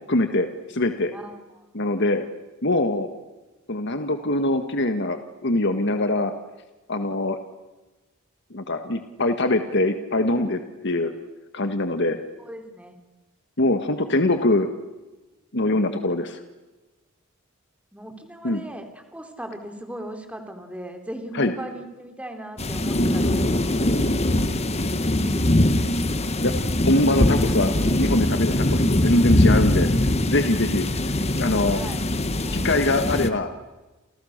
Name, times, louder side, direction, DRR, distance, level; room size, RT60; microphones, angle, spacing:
voice 1, 0.1-1.1 1.7-2.3 2.6-3.1 3.7-6.3 6.9-7.4 8.5-11.1 11.5-12.2 13.6-14.7 15.5-16.3 18.4-18.6 21.3-21.5 26.4-26.5 26.8-31.8 32.5-33.5, left 2 dB, 60° left, 7 dB, 1.7 m, -23 dB
voice 2, 1.1-1.6 12.4-13.0 15.8-16.0 17.9-23.6 24.1-24.5 25.2-25.8 30.1-30.3 31.7-32.1 32.4-33.1, right 1 dB, 5° right, 4 dB, 3.7 m, -38 dB
sound 1, 22.6-33.3, left 1 dB, 30° left, 1.4 m, -22 dB
29.5 x 29.0 x 6.7 m, 1.1 s
head